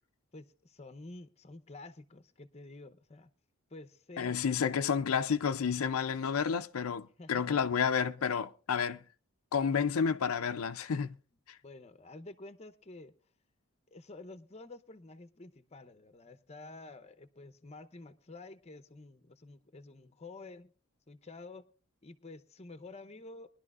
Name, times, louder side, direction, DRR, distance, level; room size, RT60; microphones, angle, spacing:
voice 1, 0.3-3.3 3.7-4.3 4.6-4.9 7.2-7.5 11.6-13.1 13.9-20.7 21.1-21.6 22.0-23.6, left 2 dB, 30° left, 0.7 m, -50 dB
voice 2, 4.2-9.0 9.5-11.2 11.5-11.6, left 6 dB, 80° left, 0.5 m, -30 dB
22.5 x 11.5 x 2.4 m
head